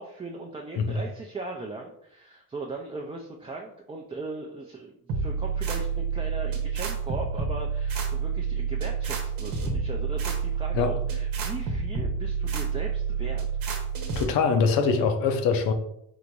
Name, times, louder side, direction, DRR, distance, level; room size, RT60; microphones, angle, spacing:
voice 1, 0.0-13.5, right 3 dB, 15° right, 0.4 m, -38 dB
sound 1, 5.1-14.2, right 6 dB, 90° right, 1.0 m, -29 dB
voice 2, 14.2-15.7, left 5 dB, 85° left, 0.7 m, -23 dB
3.9 x 2.6 x 4.5 m
cardioid pair, 120°, 34 cm